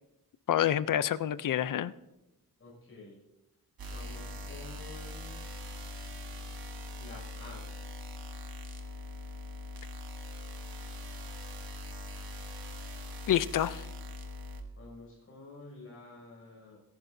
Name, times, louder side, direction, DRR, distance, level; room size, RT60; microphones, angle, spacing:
voice 1, 0.5-1.9 13.3-13.9, left 11 dB, 60° left, 15 dB, 0.6 m, -28 dB
voice 2, 2.6-3.2 3.9-5.4 7.0-7.7 14.8-16.8, left 2 dB, 40° left, -4 dB, 6.2 m, -49 dB
sound 1, 3.8-14.6, left 2 dB, 80° right, 1.5 m, -42 dB
25.5 x 11.0 x 2.7 m, 0.93 s
wide cardioid pair, 165°, 36 cm